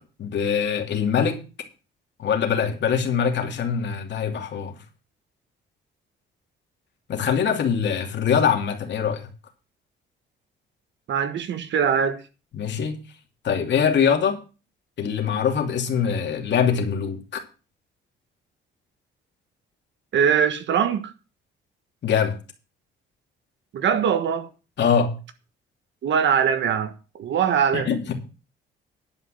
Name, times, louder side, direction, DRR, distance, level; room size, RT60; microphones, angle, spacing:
voice 1, 0.2-1.4 2.2-4.7 7.1-9.3 12.6-13.0 13.4-14.4 15.0-17.4 22.0-22.3 24.8-25.1 27.7-28.1, left 7 dB, 65° left, 2.8 m, -23 dB
voice 2, 11.1-12.2 20.1-21.1 23.7-24.5 26.0-28.0, right 7 dB, 70° right, 1.4 m, -22 dB
11.0 x 5.5 x 7.8 m
cardioid pair, 90°, 20 cm